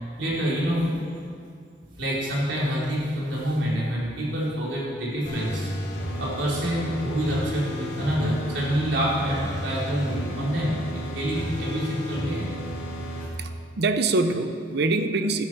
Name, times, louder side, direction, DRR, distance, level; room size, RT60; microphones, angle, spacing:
voice 1, 0.2-1.1 2.0-5.7 6.2-12.5, equal, 85° right, -5 dB, 3.4 m, -27 dB
sound 1, 5.2-13.3, equal, 75° left, 2.5 m, -33 dB
voice 2, 13.4-15.4, right 3 dB, 60° right, 9 dB, 0.7 m, -24 dB
12.5 x 11.5 x 4.6 m, 2.3 s
head